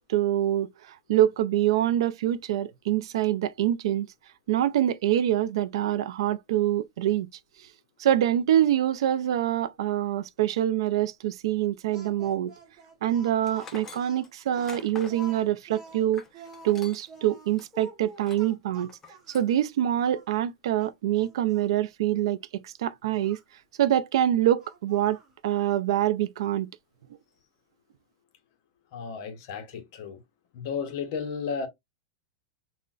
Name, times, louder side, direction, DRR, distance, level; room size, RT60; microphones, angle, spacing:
voice 1, 0.1-4.1 4.5-7.3 8.0-12.5 13.0-16.2 16.6-18.9 19.3-23.4 23.8-26.7, right 12 dB, 65° right, 0.3 m, -25 dB
Speech, 11.9-19.5 20.1-20.3 20.8-21.7 23.1-23.4 24.6-25.4, right 1 dB, 20° right, 0.8 m, -49 dB
Tools, 13.4-17.2 17.5-17.7 18.2-18.5 18.9-19.5, left 4 dB, 10° left, 0.4 m, -46 dB
voice 2, 28.9-30.2 30.5-31.7, left 6 dB, 45° left, 0.7 m, -33 dB
3.7 x 2.1 x 2.3 m
supercardioid pair, 175°, 3 cm